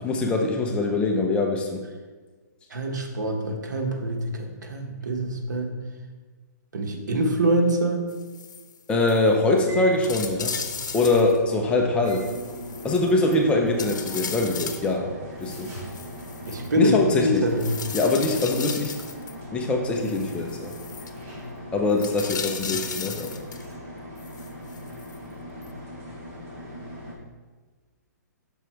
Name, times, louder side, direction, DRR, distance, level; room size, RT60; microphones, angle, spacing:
voice 1, 0.0-1.9 8.9-10.5 10.9-12.3 12.8-15.1 15.4-15.7 16.8-17.5 17.9-18.9 19.5-20.7 21.7-23.3, left 2 dB, 10° left, 2 dB, 0.5 m, -23 dB
voice 2, 2.7-5.7 6.7-8.0 16.5-17.7, right 1 dB, 75° right, 2 dB, 1.2 m, -25 dB
sound 1, 8.1-8.8 9.1-9.2 9.6-9.7 10.0-11.4 12.1-13.4 13.8-14.9 15.4-16.7 17.6-19.3 20.0-21.1 22.0-23.7 24.2-25.2 25.6-25.7, left 6 dB, 75° left, 0.7 m, -36 dB
sound 2, 9.1-27.1, equal, 30° right, 1.7 m, -39 dB
6.1 x 4.6 x 4.5 m, 1.4 s
hypercardioid pair, 150°, 10 cm